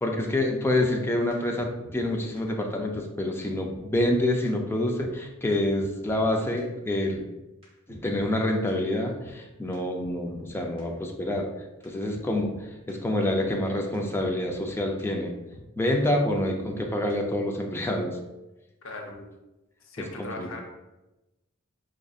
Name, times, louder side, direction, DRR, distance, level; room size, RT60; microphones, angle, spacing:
voice 1, 0.0-7.2 7.9-11.5 11.8-12.5 12.9-15.3 15.8-18.2 19.1-19.2 20.0-20.5, left 1 dB, 10° left, 1 dB, 0.4 m, -27 dB
sound 1, 1.3-1.4 1.6-2.1 2.4-2.5 2.9-3.0 3.4-3.5 3.7-4.2 4.5-4.6 5.0-5.1 5.5-5.6 5.8-6.3 6.6-6.7 7.1-7.2 7.6-8.4 8.7-8.8 9.2-9.3 9.7-9.8 10.0-10.5 10.8-10.9 11.3-11.4 11.8-11.9 12.1-12.6 12.9-13.0 13.4-13.5 13.9-14.0 14.2-14.7 15.0-15.1 15.5-15.6 16.0-16.1 16.3-16.8 17.1-17.2, equal, 25° right, 1.2 m, -46 dB
voice 2, 18.8-19.1 19.8-20.6, left 2 dB, 65° left, 1 dB, 0.6 m, -38 dB
4.9 x 2.5 x 2.3 m, 1.0 s
head